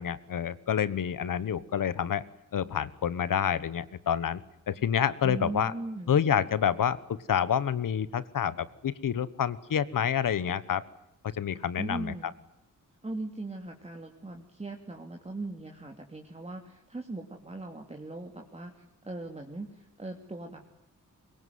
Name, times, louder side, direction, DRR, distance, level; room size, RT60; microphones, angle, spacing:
voice 1, 0.0-2.2 2.5-4.4 4.7-5.7 6.1-10.8 11.3-12.1, left 8 dB, 90° left, 17 dB, 1.3 m, -28 dB
voice 2, 5.2-6.2 11.8-12.3 13.0-20.7, right 2 dB, 20° right, 2 dB, 2.9 m, -39 dB
24.0 x 22.5 x 9.6 m, 0.87 s
wide cardioid pair, 120°, 32 cm